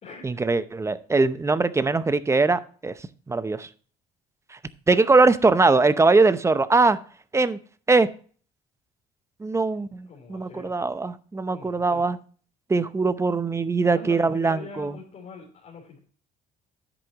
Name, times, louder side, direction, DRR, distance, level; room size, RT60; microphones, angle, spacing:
voice 1, 0.2-2.9 3.3-3.7 4.5-4.6 4.9-7.0 7.3-7.6 7.9-8.1 9.4-12.2 12.7-15.0, right 3 dB, 15° right, 14 dB, 0.7 m, -21 dB
voice 2, 10.1-10.7 11.5-12.0 13.9-16.0, left 4 dB, 45° left, -3 dB, 3.4 m, -43 dB
10.0 x 8.0 x 2.9 m, 0.42 s
cardioid pair, 110°, 17 cm